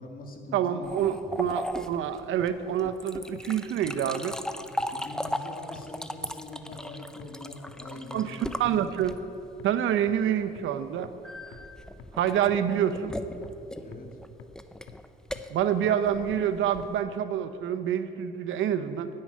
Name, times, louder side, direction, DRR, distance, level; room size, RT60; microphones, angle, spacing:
voice 1, 0.0-1.4 4.9-8.8 13.8-14.1, left 2 dB, 45° left, 2 dB, 2.2 m, -43 dB
voice 2, 0.5-4.3 8.1-9.1 9.6-11.1 12.2-13.1 15.5-19.1, right 9 dB, 80° right, 11 dB, 0.8 m, -27 dB
sound 1, 0.8-9.5 11.2-17.0, left 1 dB, 5° left, 0.6 m, -37 dB
sound 2, 1.9-2.0 2.4-2.5 2.9-3.0 3.4-3.5 3.8-3.9 4.3-4.4 4.8-4.9 5.3-5.4 5.8-5.9 6.2-6.3 6.7-6.8 7.2-7.3 7.7-7.8 8.2-8.3 8.6-8.7 9.1-9.2 9.6-9.7 10.1-10.2 10.6-10.7 11.0-11.1 11.5-11.6 12.0-12.1 12.5-12.6 13.0-13.1 13.4-13.5 13.9-14.0 14.4-14.5 14.9-15.0 15.4-15.5 15.8-15.9 16.3-16.4 16.8-16.9, left 10 dB, 85° left, 0.8 m, -47 dB
10.0 x 9.0 x 9.4 m, 2.8 s
cardioid pair, 90°, 20 cm